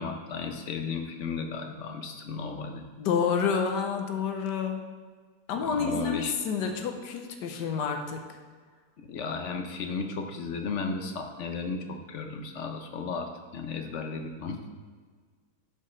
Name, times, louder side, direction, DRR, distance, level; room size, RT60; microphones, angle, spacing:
voice 1, 0.0-2.9 5.5-6.3 9.0-14.7, left 4 dB, 55° left, 5 dB, 0.9 m, -34 dB
voice 2, 3.0-4.9 5.5-8.2, left 6 dB, 90° left, 5 dB, 1.4 m, -29 dB
12.5 x 5.5 x 3.2 m, 1.5 s
omnidirectional pair, 1.8 m